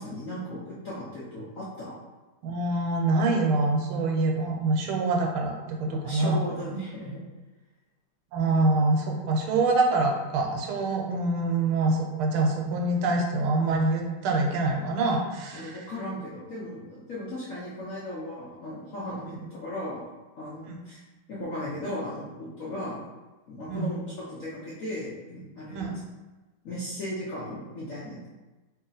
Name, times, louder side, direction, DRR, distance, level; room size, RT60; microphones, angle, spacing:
voice 1, 0.0-1.9 5.8-7.2 8.4-8.6 15.5-19.3 19.5-20.0 20.4-21.0 21.3-23.0 23.5-24.0 24.3-25.9 26.6-28.3, left 1 dB, 65° left, -8 dB, 0.8 m, -36 dB
voice 2, 2.4-6.5 8.3-15.9 20.7-20.8 23.7-24.0 25.7-25.9, right 2 dB, 85° right, 1 dB, 1.5 m, -25 dB
3.2 x 2.8 x 3.8 m, 1.2 s
omnidirectional pair, 2.3 m